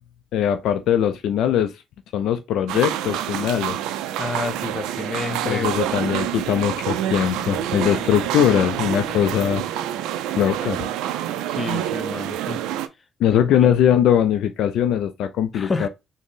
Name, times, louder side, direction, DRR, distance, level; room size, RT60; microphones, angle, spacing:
voice 1, 0.3-1.8 2.1-3.8 5.4-9.6 10.3-10.9 13.2-15.9, left 9 dB, 75° left, 0.3 m, -21 dB
sound 1, 2.7-12.9, right 11 dB, 85° right, 0.3 m, -27 dB
voice 2, 4.2-5.7 11.5-12.6 13.3-13.7 15.5-15.9, left 3 dB, 30° left, 0.6 m, -29 dB
3.7 x 2.0 x 3.6 m
supercardioid pair, 70°, 0 cm